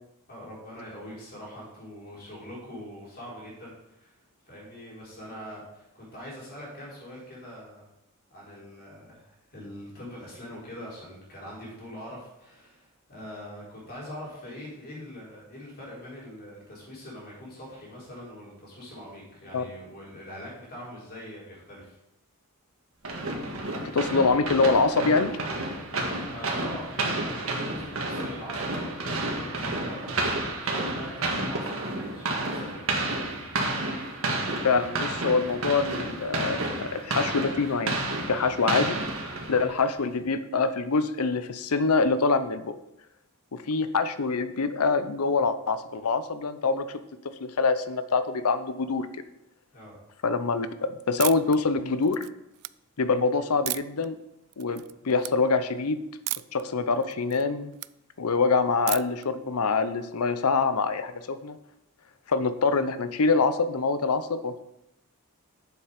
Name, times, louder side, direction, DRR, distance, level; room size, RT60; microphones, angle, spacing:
voice 1, 0.3-4.2 4.5-7.8 8.3-22.0 26.3-30.2 30.6-33.3 49.7-50.0, equal, 45° left, -5 dB, 4.2 m, -43 dB
sound 1, 23.0-39.8, right 2 dB, 65° right, 1.7 m, -31 dB
voice 2, 23.8-25.3 34.6-38.0 38.3-39.0 39.5-42.7 43.5-46.9 47.4-49.1 50.2-52.3 53.0-54.2 54.6-56.0 56.5-57.7 58.2-61.6 62.3-64.6, left 4 dB, 90° left, 12 dB, 0.7 m, -25 dB
sound 2, 51.2-51.6 52.0-52.7 53.7-54.1 54.5-54.9 55.2-55.3 56.3-56.6 57.0-57.9 58.9-59.2, right 20 dB, 85° right, 0.3 m, -33 dB
8.1 x 7.2 x 5.1 m, 0.86 s
head